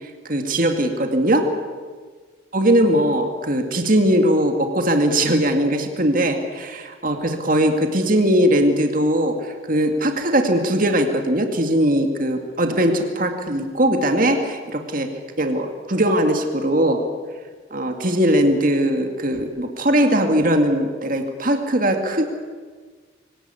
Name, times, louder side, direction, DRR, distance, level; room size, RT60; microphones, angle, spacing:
voice 1, 0.3-1.5 2.5-9.4 9.7-15.1 15.4-17.0 17.7-22.3, right 1 dB, 45° right, 5 dB, 2.2 m, -20 dB
24.0 x 18.5 x 8.5 m, 1.5 s
head